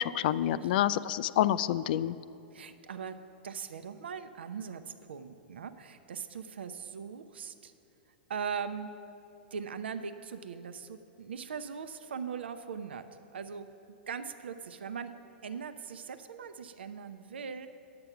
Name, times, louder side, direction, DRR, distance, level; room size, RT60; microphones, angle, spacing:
voice 1, 0.0-2.2, left 12 dB, 55° left, 16 dB, 0.3 m, -28 dB
voice 2, 2.5-3.2 3.4-7.7 8.3-8.9 9.5-13.1 13.3-13.7 14.1-15.1 15.4-17.7, right 6 dB, 75° right, 10 dB, 0.6 m, -40 dB
10.0 x 7.7 x 5.8 m, 2.6 s
hypercardioid pair, 105°, 6 cm